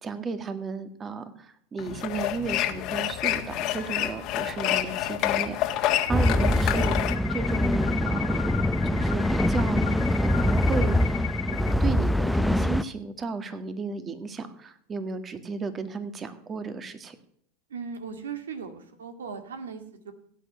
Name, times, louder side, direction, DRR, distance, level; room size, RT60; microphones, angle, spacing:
voice 1, 0.0-7.0 7.3-8.5 8.8-17.2, right 4 dB, 25° right, 10 dB, 1.8 m, -34 dB
sound 1, 1.8-7.2, left 13 dB, 50° left, 1.6 m, -28 dB
sound 2, 5.9-11.7, left 13 dB, 80° left, 1.4 m, -37 dB
sound 3, 6.1-12.8, left 1 dB, 5° left, 0.6 m, -24 dB
voice 2, 17.7-20.1, right 6 dB, 90° right, 9 dB, 2.0 m, -38 dB
16.0 x 8.5 x 6.8 m, 0.67 s
hypercardioid pair, 100°, 0 cm